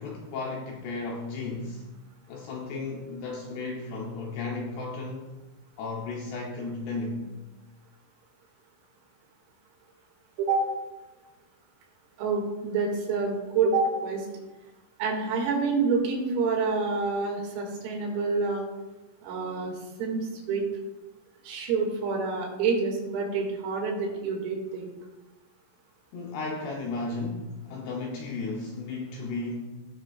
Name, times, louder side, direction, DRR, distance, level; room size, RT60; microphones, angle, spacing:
voice 1, 0.0-1.9 2.3-5.3 5.8-7.3 26.1-29.6, left 3 dB, 75° left, -1 dB, 2.5 m, -34 dB
voice 2, 12.2-14.3 15.0-18.7 19.2-19.7 20.0-20.7 21.4-24.9, right 4 dB, 85° right, 0 dB, 4.8 m, -27 dB
18.5 x 7.8 x 2.4 m, 1.1 s
omnidirectional pair, 5.9 m